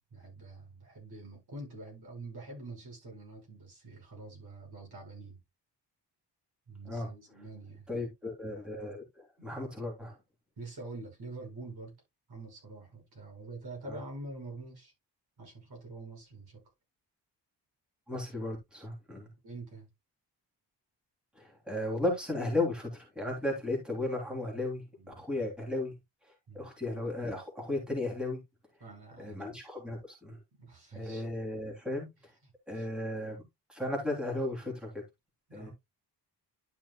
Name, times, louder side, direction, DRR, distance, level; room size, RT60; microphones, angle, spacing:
voice 1, 0.0-5.4 6.7-7.9 9.4-9.6 10.6-11.9 12.3-14.9 15.4-16.6 19.1-19.9 25.0-25.4 26.5-26.6 28.8-29.4 30.6-31.2 32.4-32.9 35.5-35.7, right 2 dB, 65° right, 6.0 m, -46 dB
voice 2, 7.9-10.1 13.9-14.0 18.1-19.3 21.4-24.8 25.1-25.9 26.5-28.4 29.2-30.4 30.9-32.3 32.7-33.4 33.7-35.0 35.5-35.7, left 2 dB, ahead, 3.1 m, -35 dB
11.5 x 6.0 x 2.3 m
wide cardioid pair, 140°, 42 cm